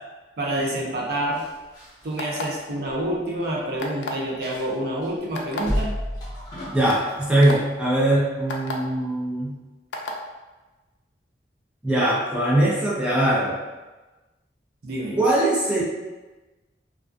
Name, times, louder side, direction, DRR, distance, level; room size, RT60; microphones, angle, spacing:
voice 1, 0.4-1.4 2.0-5.9 14.8-15.2, right 1 dB, 60° right, -2 dB, 0.5 m, -27 dB
sound 1, 1.3-3.6 3.8-3.9 4.4-5.1 5.6-7.4 7.8-8.0, equal, 25° left, 0.8 m, -32 dB
sound 2, 2.2-2.6 3.8-4.2 5.4-5.6 6.4-6.5 6.9-7.0 7.4-7.6 8.5-8.7 9.9-10.2, left 3 dB, 75° left, 0.4 m, -31 dB
voice 2, 6.7-9.6 11.8-13.6 15.1-15.8, right 1 dB, 5° right, -7 dB, 0.5 m, -21 dB
2.3 x 2.2 x 2.4 m, 1.2 s
head